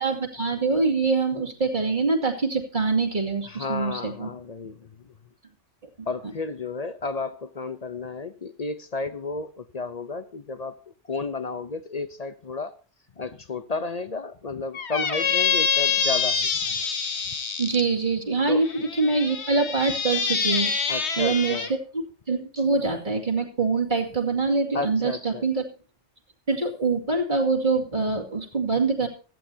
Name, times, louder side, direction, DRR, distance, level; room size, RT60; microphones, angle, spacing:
voice 1, 0.0-4.3 6.0-6.1 17.6-18.7 19.0-21.7 21.9-25.6 26.5-29.1, right 4 dB, 45° right, 2.5 m, -24 dB
voice 2, 3.5-5.1 6.1-10.8 11.1-12.7 13.2-16.8 18.5-18.6 20.9-21.7 24.7-25.4, left 3 dB, 40° left, 0.7 m, -32 dB
Squeak, 14.7-17.8 18.6-21.7, left 6 dB, 70° left, 1.5 m, -26 dB
17.0 x 14.0 x 2.8 m
omnidirectional pair, 1.2 m